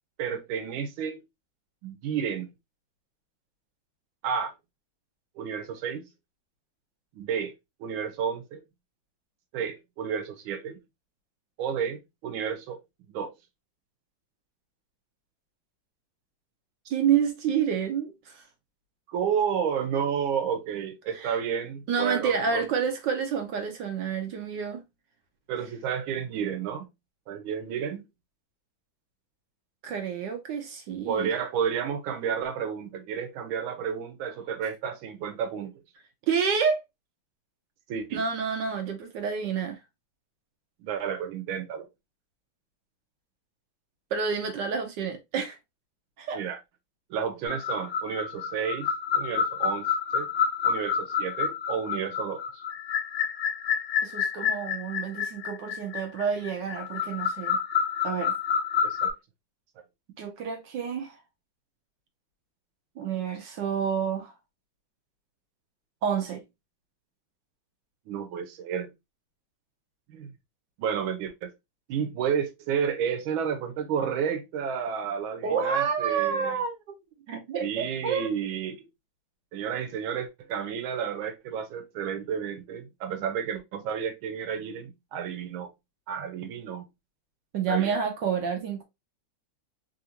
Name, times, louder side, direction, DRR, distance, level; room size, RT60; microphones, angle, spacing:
voice 1, 0.2-1.2 1.8-2.5 4.2-4.5 5.4-6.0 7.1-7.5 7.8-8.6 9.5-10.8 11.6-12.8 13.1-13.3 19.1-22.6 25.5-26.8 27.3-28.1 31.1-35.7 37.9-38.2 40.8-41.9 46.3-46.6 47.1-48.9 49.1-50.3 50.6-52.6 58.8-59.1 68.1-68.9 70.1-70.3 70.8-71.5 71.9-76.6 77.6-78.9 79.5-85.7 86.1-86.9 87.7-87.9, right 7 dB, 85° right, 1.5 m, -31 dB
voice 2, 16.9-18.4 21.1-21.4 21.9-24.8 29.8-31.3 36.3-36.8 38.1-39.8 44.1-45.6 46.2-46.4 54.0-57.6 58.0-58.3 60.2-61.2 63.0-64.3 66.0-66.4 75.4-76.9 77.3-78.3 87.5-88.8, right 6 dB, 70° right, 1.2 m, -29 dB
sound 1, 47.4-59.1, left 7 dB, 65° left, 0.7 m, -29 dB
3.4 x 2.5 x 2.7 m
omnidirectional pair, 2.2 m